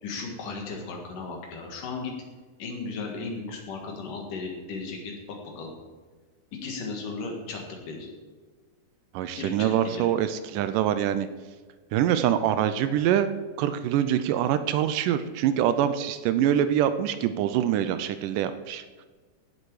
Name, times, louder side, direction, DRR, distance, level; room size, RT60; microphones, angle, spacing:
voice 1, 0.0-2.1 2.6-5.7 6.5-8.1 9.4-10.0, left 4 dB, 70° left, 1 dB, 3.3 m, -36 dB
voice 2, 9.1-11.3 11.9-13.3 13.6-18.8, right 10 dB, 80° right, 11 dB, 2.1 m, -24 dB
16.0 x 7.6 x 4.8 m, 1.4 s
omnidirectional pair, 4.0 m